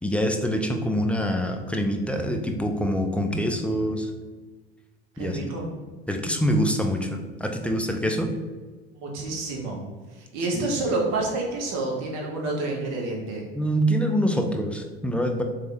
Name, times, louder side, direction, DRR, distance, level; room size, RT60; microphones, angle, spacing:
voice 1, 0.0-4.1 5.2-5.5 6.1-8.3 10.5-10.7 13.5-15.4, equal, 5° left, 4 dB, 0.4 m, -25 dB
voice 2, 5.1-5.7 8.9-9.8 10.1-13.4, right 2 dB, 55° right, 0 dB, 1.3 m, -28 dB
3.8 x 3.4 x 3.3 m, 1.3 s
hypercardioid pair, 80°, 31 cm